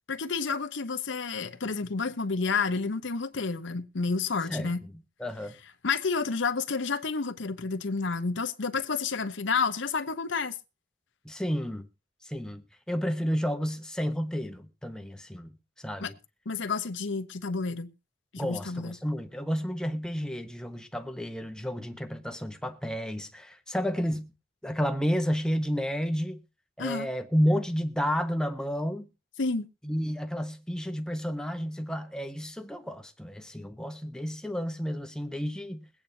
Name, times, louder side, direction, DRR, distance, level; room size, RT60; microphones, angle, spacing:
voice 1, 0.1-4.8 5.8-10.5 16.0-16.1 16.5-17.9 18.3-19.0 26.8-27.1 29.4-29.7, left 4 dB, 70° left, 0.8 m, -30 dB
voice 2, 5.2-5.5 11.2-11.9 12.2-16.1 18.4-24.3 24.6-26.4 26.8-29.1 29.8-35.9, equal, 5° left, 0.8 m, -31 dB
22.0 x 8.8 x 2.7 m
head